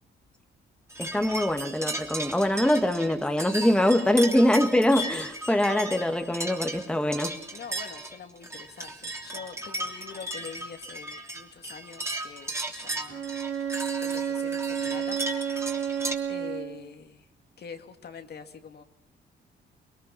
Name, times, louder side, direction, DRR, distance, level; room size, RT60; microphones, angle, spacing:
sound 1, 0.9-16.1, right 1 dB, 15° right, 3.1 m, -36 dB
voice 1, 1.0-7.4, left 1 dB, 5° left, 1.7 m, -23 dB
voice 2, 7.5-13.2 14.0-15.2 15.5-15.6 16.3-17.3 17.6-18.8, left 6 dB, 55° left, 2.3 m, -44 dB
Bowed string instrument, 13.1-16.9, right 8 dB, 80° right, 4.9 m, -31 dB
25.5 x 21.5 x 5.8 m
cardioid pair, 90°, 20 cm